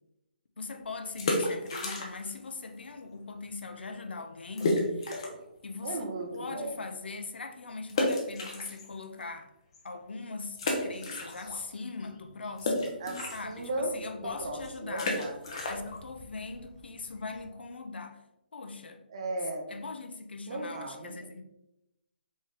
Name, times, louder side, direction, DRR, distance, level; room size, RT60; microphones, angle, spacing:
voice 1, 0.6-5.3 5.6-9.5 9.8-13.0 13.3-15.2 15.7-18.2 18.5-19.0 19.7-21.4, left 3 dB, 85° left, 0.7 m, -40 dB
sound 1, 1.1-2.4 2.7-2.8 3.4-3.5 3.8-3.9 4.6-5.5 6.0-6.1 7.9-9.2 9.7-9.8 10.5-11.7 12.0-17.5, left 2 dB, 30° left, 0.7 m, -33 dB
voice 2, 5.8-6.8 13.0-15.6 19.1-19.6 20.5-21.2, right 2 dB, 30° right, 0.5 m, -36 dB
4.1 x 3.6 x 3.6 m
hypercardioid pair, 180°, 6 cm